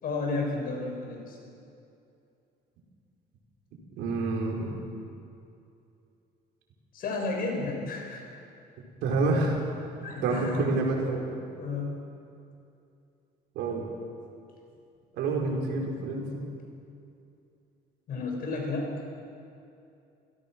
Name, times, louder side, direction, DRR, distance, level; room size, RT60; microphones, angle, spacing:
voice 1, 0.0-1.4 6.9-8.4 10.0-10.7 11.5-12.0 18.1-19.0, left 3 dB, 60° left, 1 dB, 6.6 m, -32 dB
voice 2, 4.0-4.8 9.0-9.7 10.2-11.3 13.5-13.9 15.1-16.4, right 3 dB, 85° right, -1 dB, 4.9 m, -28 dB
29.0 x 17.5 x 6.3 m, 2.6 s
cardioid pair, 110°, 17 cm